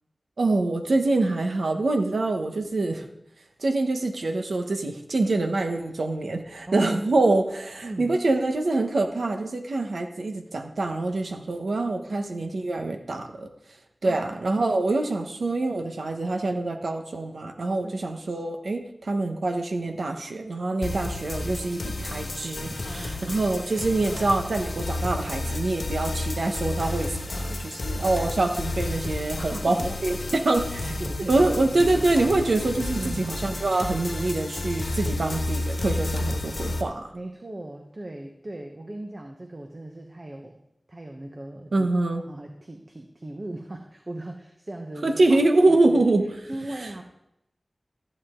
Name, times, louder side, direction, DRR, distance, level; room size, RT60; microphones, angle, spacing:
voice 1, 0.4-3.0 3.6-13.5 14.0-30.9 31.3-37.1 41.7-42.2 45.0-46.5 46.8-46.9, right 2 dB, 85° right, 5 dB, 1.2 m, -25 dB
voice 2, 6.7-7.0 7.8-8.2 14.0-14.3 17.8-17.9 22.8-23.4 29.4-29.9 30.3-30.4 30.8-32.1 32.9-33.4 37.1-40.6 40.9-41.9 42.3-45.4 45.7-46.0 46.5-47.0, right 1 dB, 40° right, 3 dB, 1.1 m, -38 dB
sound 1, 20.8-36.8, left 2 dB, 70° left, 1.2 m, -31 dB
Animal, 22.8-27.8, equal, 25° right, 5.2 m, -50 dB
14.0 x 8.6 x 3.8 m, 0.80 s
wide cardioid pair, 65°, 0 cm